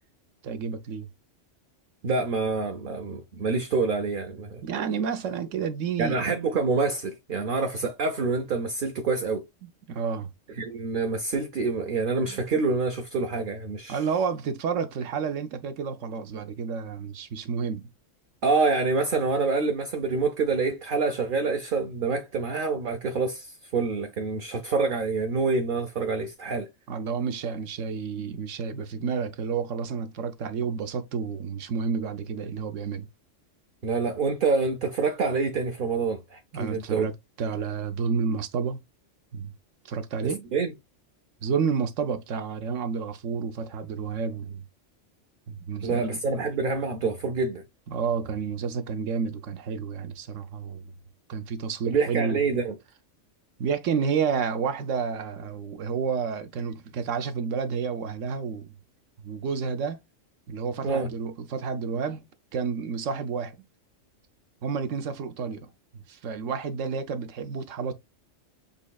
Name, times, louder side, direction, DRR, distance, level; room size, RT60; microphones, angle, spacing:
voice 1, 0.4-1.1 4.6-6.3 9.6-10.3 12.3-12.4 13.9-17.9 26.9-33.1 36.5-37.1 37.4-38.8 39.3-39.5 39.8-40.5 41.4-44.6 45.5-46.4 47.9-50.8 51.3-52.4 53.6-58.7 59.2-60.0 60.5-62.2 62.5-63.6 64.6-65.7 66.1-67.9, right 6 dB, 80° right, 1.1 m, -30 dB
voice 2, 2.0-4.6 6.0-9.4 10.6-14.0 18.4-26.7 33.8-37.1 40.5-40.7 45.8-47.6 51.9-52.7 60.8-61.1, right 4 dB, 50° right, 0.7 m, -26 dB
7.1 x 3.1 x 2.3 m
omnidirectional pair, 1.3 m